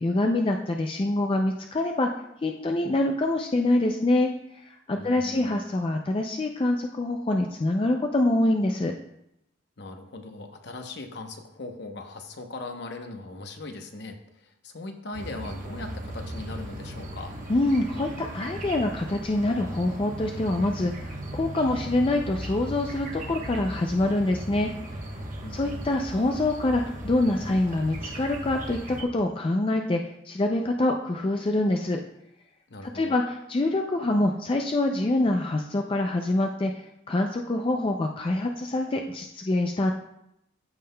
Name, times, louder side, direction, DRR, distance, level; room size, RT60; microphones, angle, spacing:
voice 1, 0.0-2.1 2.4-4.3 4.6-8.9 17.5-25.0 25.5-32.0 32.8-39.9, left 2 dB, 25° left, 3 dB, 0.3 m, -25 dB
voice 2, 4.9-5.5 9.8-17.3 25.4-25.8 32.7-33.2, left 2 dB, 55° left, 5 dB, 0.8 m, -39 dB
sound 1, 15.1-29.0, right 1 dB, 40° right, 1.0 m, -37 dB
14.0 x 5.5 x 2.2 m, 0.81 s
head